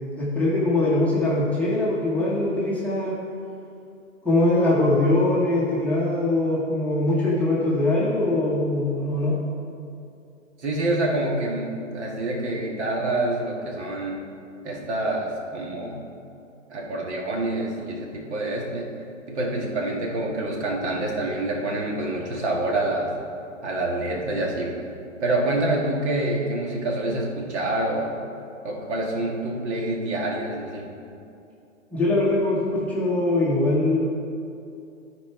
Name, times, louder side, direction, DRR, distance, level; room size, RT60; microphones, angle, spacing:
voice 1, 0.1-3.1 4.2-9.4 31.9-34.0, left 2 dB, 5° left, -8 dB, 1.0 m, -22 dB
voice 2, 10.6-14.2 14.6-16.0 16.7-18.9 19.3-23.1 23.6-24.8 25.2-28.2 28.6-30.9, right 2 dB, 60° right, -1 dB, 2.0 m, -27 dB
12.5 x 4.7 x 4.5 m, 2.6 s
hypercardioid pair, 140°, 39 cm